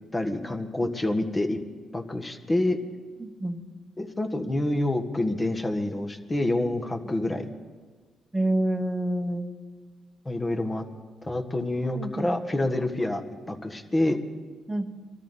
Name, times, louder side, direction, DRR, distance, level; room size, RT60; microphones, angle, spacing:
voice 1, 0.1-1.6 1.9-2.8 4.0-7.5 10.2-10.8 11.2-13.2 13.5-14.2, left 1 dB, 20° left, 6 dB, 1.6 m, -27 dB
voice 2, 3.2-3.6 8.3-9.5 11.9-12.3 14.7-14.9, right 1 dB, 10° right, 6 dB, 1.3 m, -28 dB
24.0 x 13.5 x 4.0 m, 1.4 s
cardioid pair, 90°, 0 cm